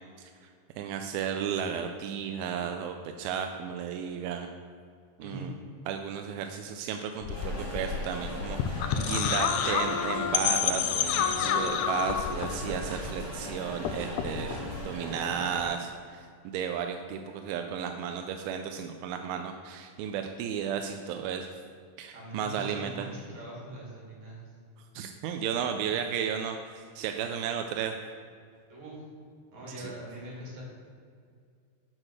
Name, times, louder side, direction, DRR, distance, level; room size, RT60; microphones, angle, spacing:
voice 1, 0.8-4.5 5.2-5.5 5.9-21.5 22.0-23.1 25.0-28.0 29.8-29.9, right 7 dB, 90° right, 5 dB, 2.4 m, -34 dB
sound 1, 7.2-13.5 13.7-14.8, left 8 dB, 90° left, 1.7 m, -30 dB
sound 2, 7.3-15.7, equal, 10° left, 1.1 m, -40 dB
sound 3, 10.1-10.9 11.2-14.8, right 2 dB, 25° right, 2.3 m, -49 dB
voice 2, 22.1-24.5 28.7-29.1 29.5-30.6, right 1 dB, 55° right, -4 dB, 3.9 m, -42 dB
7.4 x 6.2 x 6.5 m, 2.2 s
omnidirectional pair, 4.2 m